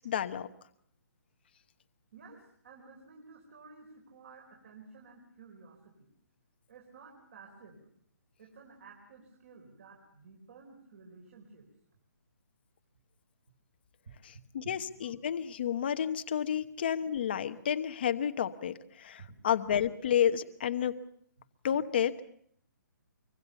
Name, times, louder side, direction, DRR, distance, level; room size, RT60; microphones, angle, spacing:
voice 1, 0.0-0.5 14.2-20.9 21.6-22.2, left 9 dB, 30° left, 9 dB, 1.1 m, -31 dB
voice 2, 2.1-6.1 6.7-7.8 8.4-11.7 14.0-14.2 15.0-15.1 19.2-19.3, right 4 dB, 40° right, 1 dB, 4.9 m, -53 dB
25.0 x 24.0 x 7.1 m, 0.67 s
hypercardioid pair, 175°, 11 cm